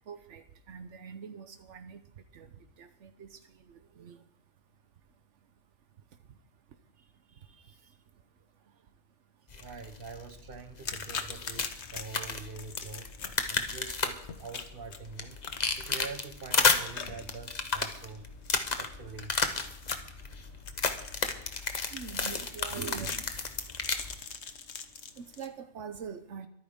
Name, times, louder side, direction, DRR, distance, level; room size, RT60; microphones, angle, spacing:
voice 1, 0.1-2.0 2.3-2.5 2.8-3.4 3.7-4.2 21.9-23.3 25.2-26.5, right 6 dB, 85° right, 9 dB, 1.2 m, -43 dB
voice 2, 7.0-7.9 9.5-13.1 13.5-15.4 15.8-18.2 18.7-19.3, right 4 dB, 50° right, 7 dB, 1.5 m, -45 dB
sound 1, 9.5-24.2, left 4 dB, 40° left, 1.1 m, -33 dB
sound 2, 10.8-25.5, left 6 dB, 70° left, 1.3 m, -44 dB
23.0 x 9.3 x 3.7 m, 0.77 s
omnidirectional pair, 1.2 m